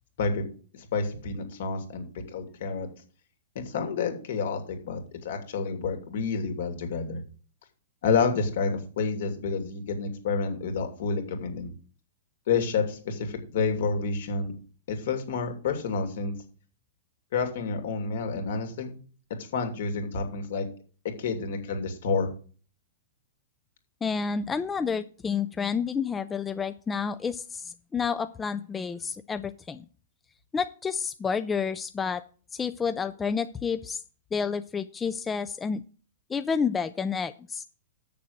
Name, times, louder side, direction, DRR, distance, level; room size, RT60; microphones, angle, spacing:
voice 1, 0.9-2.9 3.5-7.2 8.0-11.7 12.5-14.5 14.9-16.3 17.3-19.0 19.5-20.7 21.2-22.3, left 4 dB, 65° left, 4 dB, 2.7 m, -29 dB
voice 2, 24.0-29.8 30.5-32.2 32.5-34.0 34.3-35.8 36.3-37.6, left 6 dB, 15° left, 11 dB, 0.4 m, -30 dB
7.5 x 6.8 x 6.6 m, 0.41 s
hypercardioid pair, 145°, 0 cm